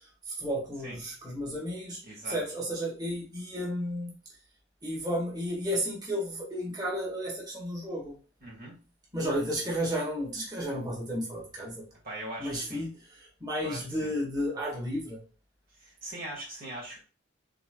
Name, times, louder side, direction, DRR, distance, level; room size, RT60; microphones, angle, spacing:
voice 1, 0.0-4.1 4.8-8.2 9.1-11.8 12.4-15.2, equal, 20° right, -4 dB, 2.0 m, -33 dB
voice 2, 2.0-2.4 8.4-8.8 12.0-12.9 13.6-14.1 15.7-17.0, right 1 dB, 50° right, -3 dB, 1.8 m, -41 dB
5.9 x 3.9 x 2.3 m, 0.35 s
head